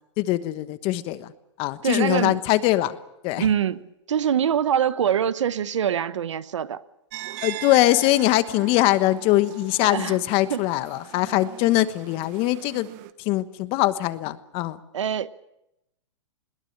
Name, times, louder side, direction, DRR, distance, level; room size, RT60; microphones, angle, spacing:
voice 1, 0.2-1.3 1.6-3.0 3.2-3.5 7.4-12.9 13.2-14.8, left 16 dB, 40° left, 1.3 m, -22 dB
voice 2, 1.8-2.4 3.4-6.8 9.8-10.2 10.5-10.6 14.9-15.3, right 9 dB, 85° right, 1.1 m, -24 dB
sound 1, 7.1-13.1, right 16 dB, 45° right, 1.3 m, -41 dB
21.5 x 18.0 x 8.8 m
hypercardioid pair, 130°, 15 cm